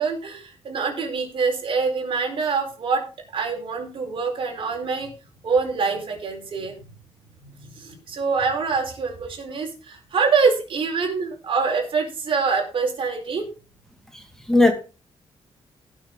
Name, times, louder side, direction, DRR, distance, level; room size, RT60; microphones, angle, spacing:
voice 1, 0.0-3.0 3.3-5.1 5.4-7.0 7.4-13.5, right 5 dB, 60° right, 4.5 m, -25 dB
voice 2, 14.1-14.7, left 2 dB, 5° left, 2.1 m, -19 dB
17.0 x 6.6 x 3.8 m
cardioid pair, 95°, 10 cm